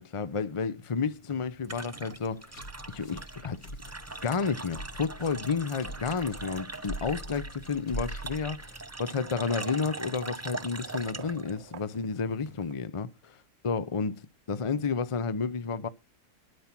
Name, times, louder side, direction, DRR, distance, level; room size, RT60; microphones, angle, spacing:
voice 1, 0.0-2.6 2.9-3.6 4.2-15.9, left 5 dB, 40° left, 0.4 m, -31 dB
sound 1, 1.0-12.7, right 2 dB, 20° right, 0.4 m, -42 dB
sound 2, 2.1-9.0, equal, 65° left, 2.1 m, -43 dB
sound 3, 5.9-6.9 7.9-8.0 9.0-12.8, right 10 dB, 55° right, 0.9 m, -51 dB
13.0 x 5.9 x 5.9 m
omnidirectional pair, 1.6 m